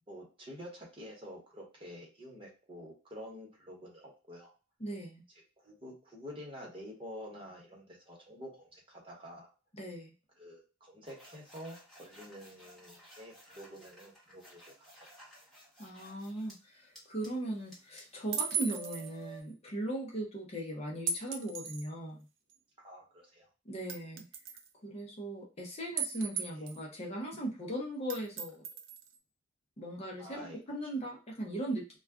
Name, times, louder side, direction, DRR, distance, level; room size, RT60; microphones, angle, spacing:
voice 1, 0.1-4.5 5.6-9.5 10.4-15.4 22.8-23.5 26.5-26.7 30.2-30.9, equal, 30° right, -2 dB, 1.1 m, -49 dB
voice 2, 4.8-5.2 9.7-10.1 15.8-22.2 23.6-24.2 24.8-28.6 29.8-32.0, right 1 dB, 35° left, -1 dB, 0.7 m, -38 dB
sound 1, 11.1-16.6 17.0-19.4, right 3 dB, ahead, 1.1 m, -55 dB
sound 2, 18.3-19.1 21.1-21.9 22.5-22.6 23.9-24.7 26.0-26.8 28.1-29.2, right 6 dB, 85° right, 0.5 m, -36 dB
2.3 x 2.3 x 3.5 m, 0.32 s
head